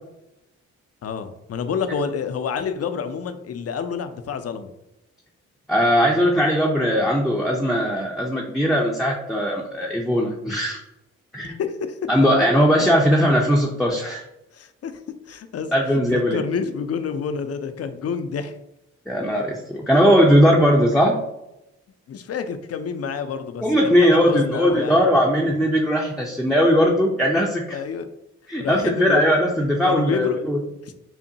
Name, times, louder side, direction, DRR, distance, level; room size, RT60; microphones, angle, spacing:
voice 1, 1.0-4.7 11.4-12.0 14.5-14.9 15.3-15.7 16.1-18.5 22.1-25.0 27.7-28.1 28.6-29.2 29.8-30.4 30.8-30.9, left 6 dB, 50° left, 9 dB, 0.5 m, -28 dB
voice 2, 5.7-10.8 11.3-11.6 12.1-14.2 15.7-16.4 19.1-21.2 23.6-27.8 28.5-30.6, equal, ahead, -2 dB, 0.6 m, -19 dB
5.6 x 2.1 x 2.7 m, 0.89 s
supercardioid pair, 55°, 32 cm